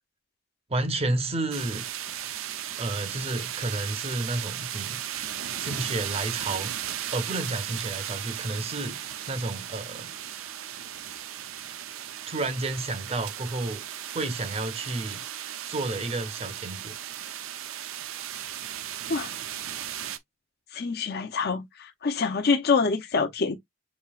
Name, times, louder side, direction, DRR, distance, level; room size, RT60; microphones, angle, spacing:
voice 1, 0.7-1.9 2.8-5.0 5.6-6.7 7.1-9.0 9.3-10.1 12.3-15.2 15.7-17.0, right 2 dB, 30° right, 0.8 m, -31 dB
sound 1, 1.5-20.2, right 11 dB, 90° right, 0.5 m, -36 dB
voice 2, 20.7-23.6, left 4 dB, 55° left, 0.6 m, -26 dB
7.1 x 2.8 x 2.3 m
head